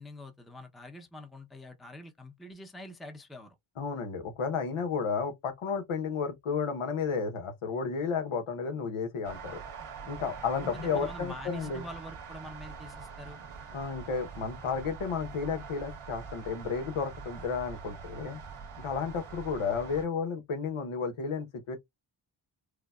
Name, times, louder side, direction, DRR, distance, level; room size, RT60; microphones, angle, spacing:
voice 1, 0.0-3.5 10.6-13.4, left 1 dB, ahead, 0.7 m, -45 dB
voice 2, 3.8-9.6 10.1-11.8 13.7-18.4 18.8-21.8, left 5 dB, 80° left, 1.1 m, -32 dB
sound 1, 9.2-20.0, right 6 dB, 90° right, 1.6 m, -44 dB
4.9 x 2.2 x 2.4 m
cardioid pair, 55°, 50 cm